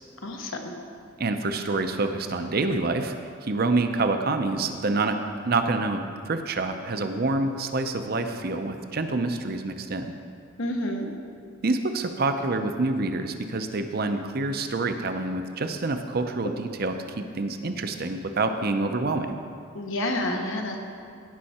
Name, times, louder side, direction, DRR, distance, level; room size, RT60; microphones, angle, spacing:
voice 1, 0.2-0.7 10.6-11.1 19.7-20.8, left 1 dB, 75° left, 2 dB, 1.1 m, -29 dB
voice 2, 1.2-3.1 3.4-5.2 5.5-10.1 11.6-19.4, right 3 dB, 50° right, 7 dB, 0.6 m, -27 dB
17.0 x 5.6 x 4.3 m, 2.4 s
head